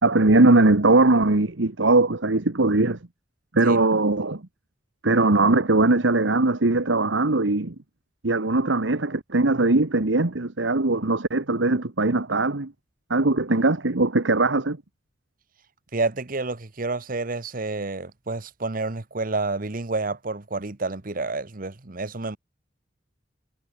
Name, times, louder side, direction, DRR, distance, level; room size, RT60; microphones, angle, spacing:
voice 1, 0.0-3.0 3.5-4.4 5.0-7.7 8.2-12.7 13.1-14.8, right 2 dB, 90° right, 1.5 m, -20 dB
voice 2, 15.9-22.4, right 3 dB, 50° right, 1.2 m, -29 dB
head